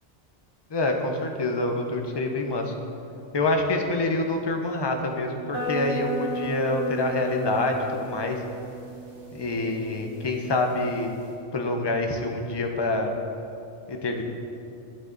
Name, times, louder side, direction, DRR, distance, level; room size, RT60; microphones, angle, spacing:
voice 1, 0.7-2.7 3.3-8.4 9.3-11.1 11.5-13.1 13.9-14.2, left 2 dB, 30° left, 3 dB, 0.5 m, -26 dB
sound 1, 5.5-11.3, right 1 dB, 60° right, 1.7 m, -35 dB
9.5 x 6.6 x 3.9 m, 2.7 s
omnidirectional pair, 1.2 m